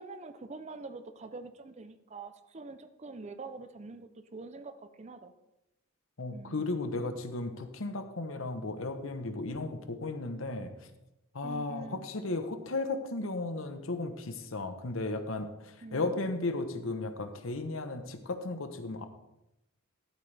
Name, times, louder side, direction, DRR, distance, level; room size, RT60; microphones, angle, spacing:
voice 1, 0.0-5.3 6.3-6.7 11.4-12.0 15.8-16.1, right 3 dB, 30° right, 11 dB, 0.5 m, -45 dB
voice 2, 6.2-10.9 11.3-19.1, left 2 dB, 70° left, 8 dB, 1.0 m, -35 dB
12.5 x 8.3 x 3.4 m, 0.91 s
head